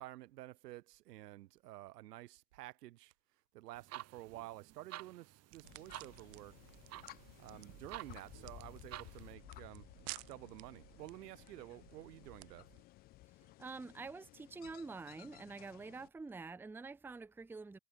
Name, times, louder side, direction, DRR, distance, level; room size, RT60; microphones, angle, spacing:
voice 1, 0.0-3.1 3.5-6.6 7.4-9.9 10.3-12.7, right 16 dB, 75° right, 1.5 m, -51 dB
sound 1, 3.7-9.3, right 15 dB, 30° right, 1.2 m, -52 dB
sound 2, 5.5-12.8, right 35 dB, 50° right, 0.9 m, -55 dB
sound 3, 5.6-16.1, left 18 dB, 20° left, 0.3 m, -57 dB
voice 2, 13.6-17.8, right 4 dB, 5° right, 0.7 m, -47 dB
hypercardioid pair, 115°, 48 cm